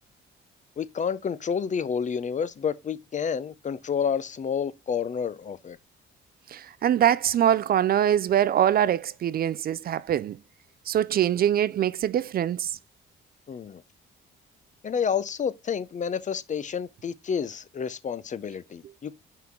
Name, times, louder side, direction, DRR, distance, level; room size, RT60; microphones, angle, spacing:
voice 1, 0.8-5.8 13.5-13.8 14.8-19.1, left 7 dB, 40° left, 0.6 m, -29 dB
voice 2, 6.5-10.4 10.9-12.8, right 10 dB, 50° right, 0.4 m, -23 dB
5.8 x 3.8 x 4.4 m
cardioid pair, 90°, 20 cm